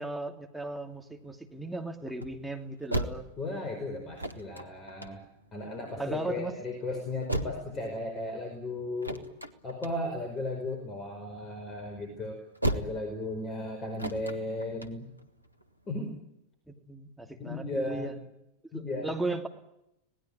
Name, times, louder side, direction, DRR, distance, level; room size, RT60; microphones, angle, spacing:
voice 1, 0.0-3.3 6.0-6.6 16.7-18.2 18.7-19.5, right 2 dB, ahead, 2 dB, 2.9 m, -36 dB
sound 1, 0.6-16.1, right 1 dB, 90° right, 1.5 m, -39 dB
voice 2, 3.4-5.2 5.5-9.2 9.6-12.4 12.7-15.1 15.9-16.1 17.4-18.1 18.7-19.2, left 2 dB, 25° left, 5 dB, 4.9 m, -35 dB
26.5 x 19.0 x 8.9 m, 0.83 s
figure-of-eight pair, 90°, 0 cm